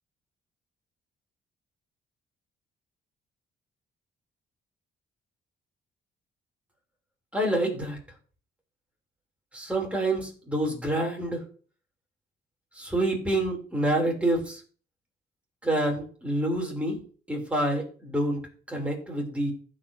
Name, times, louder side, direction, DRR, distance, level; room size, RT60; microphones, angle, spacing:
voice 1, 7.3-8.0 9.5-11.4 12.8-14.6 15.6-17.0 17.3-19.5, right 1 dB, 5° right, -1 dB, 3.5 m, -27 dB
15.5 x 5.2 x 2.9 m, 0.42 s
cardioid pair, 90°, 20 cm